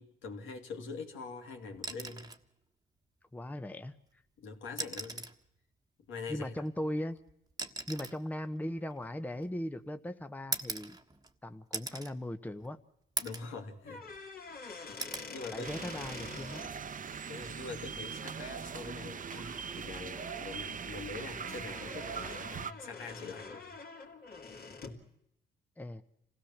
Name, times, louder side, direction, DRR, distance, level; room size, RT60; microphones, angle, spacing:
voice 1, 0.0-2.3 4.4-5.2 6.1-6.6 13.2-14.0 14.7-15.0 15.3-16.0 17.3-23.7, left 4 dB, 80° left, 2.9 m, -44 dB
sound 1, 1.7-2.5 3.9-4.0 4.7-5.5 6.6-9.7 10.5-11.4 11.7-12.1 12.6-12.7 13.2-13.6 14.0-14.6 15.0-15.3 16.8-17.0, right 3 dB, 20° right, 1.4 m, -40 dB
voice 2, 3.3-4.0 6.3-7.2 7.9-11.0 11.4-12.8 15.5-16.6 25.8-26.0, left 1 dB, 10° left, 0.9 m, -38 dB
sound 2, 13.8-16.7 18.8-19.0 19.3-19.6 20.1-25.0, left 4 dB, 50° left, 2.8 m, -47 dB
sound 3, 15.6-22.7, right 6 dB, 40° right, 1.0 m, -41 dB
26.5 x 16.5 x 7.3 m
cardioid pair, 90°, 20 cm